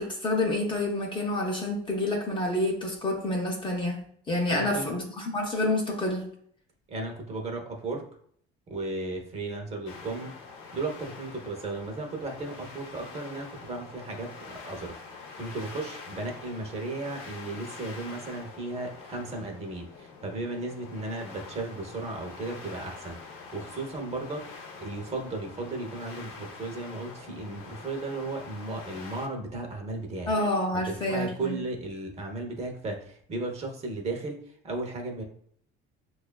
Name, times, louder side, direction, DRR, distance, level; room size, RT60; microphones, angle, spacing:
voice 1, 0.0-6.3 30.3-31.6, left 1 dB, 25° left, 1 dB, 0.6 m, -28 dB
voice 2, 4.5-4.9 6.9-8.1 8.7-10.3 10.7-30.3 30.7-35.2, right 2 dB, 30° right, 2 dB, 0.7 m, -35 dB
sound 1, 9.9-29.3, left 4 dB, 85° left, 0.7 m, -45 dB
6.0 x 2.3 x 2.2 m, 0.62 s
cardioid pair, 150°, 21 cm